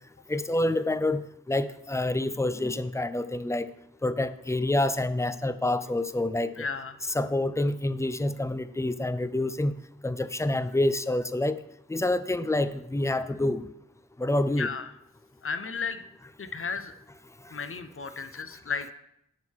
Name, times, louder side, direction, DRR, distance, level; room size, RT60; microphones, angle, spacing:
voice 1, 0.3-3.7 4.0-6.7 7.1-9.8 10.0-11.6 11.9-13.6 14.2-14.7, left 1 dB, 10° left, 12 dB, 0.4 m, -27 dB
voice 2, 6.6-7.0 14.5-14.9 15.4-16.0 16.4-16.9 17.5-18.9, left 5 dB, 45° left, 10 dB, 0.7 m, -34 dB
10.5 x 3.7 x 6.3 m, 0.79 s
wide cardioid pair, 55°, 31 cm